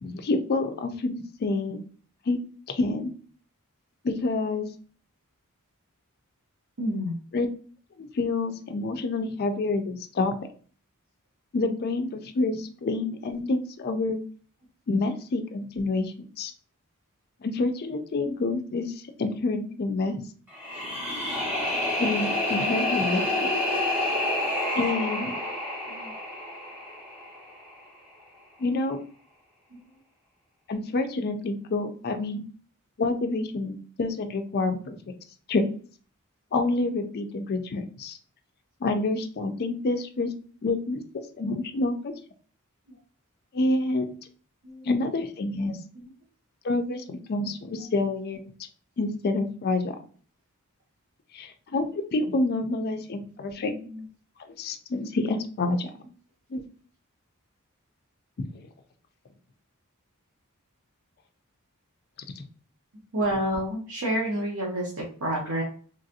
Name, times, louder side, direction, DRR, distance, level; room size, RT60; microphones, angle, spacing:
voice 1, 0.0-1.8 2.3-2.4 2.7-3.1 4.0-4.7 7.3-7.5 8.0-10.3 11.5-14.2 14.9-16.5 17.4-20.2 22.0-23.5 24.7-25.4 28.6-29.0 30.7-32.4 33.0-35.1 35.5-35.7 36.5-38.2 38.8-40.3 40.6-42.1 43.5-44.1 44.8-45.8 46.6-48.4 49.0-50.0 51.3-53.7 54.6-55.9 56.5-56.6 58.4-58.6 62.4-62.5, left 2 dB, 45° left, 7 dB, 0.4 m, -28 dB
voice 2, 6.8-7.1 25.9-26.1 29.7-29.8 42.9-43.0 44.6-44.9 45.9-46.1 47.8-47.9 53.6-54.1 63.1-65.6, equal, 75° right, -4 dB, 0.9 m, -29 dB
sound 1, 20.5-27.6, left 1 dB, 10° right, 1.1 m, -28 dB
3.1 x 2.5 x 2.7 m, 0.43 s
head